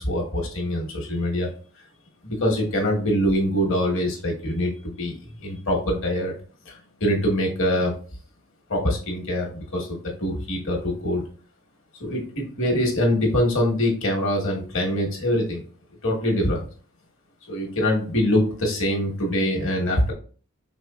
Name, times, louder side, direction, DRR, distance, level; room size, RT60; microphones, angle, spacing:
voice 1, 0.0-1.5 2.2-6.3 6.6-7.9 8.7-11.2 12.0-15.6 16.0-16.6 17.5-20.1, equal, 60° left, 1 dB, 1.3 m, -24 dB
4.8 x 3.5 x 2.4 m, 0.40 s
head